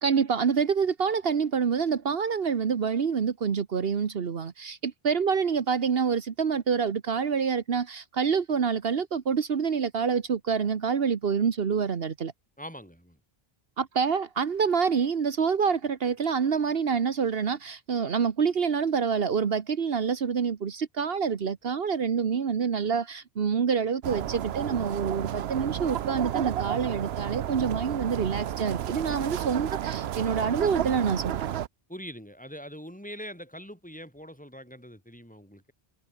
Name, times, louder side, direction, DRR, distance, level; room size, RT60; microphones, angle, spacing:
voice 1, 0.0-12.3 13.8-31.4, right 6 dB, 70° right, 1.3 m, -27 dB
voice 2, 12.6-13.2 31.9-35.7, equal, 10° left, 6.5 m, -43 dB
sound 1, 24.0-31.7, right 11 dB, 85° right, 0.9 m, -32 dB
omnidirectional pair, 1.0 m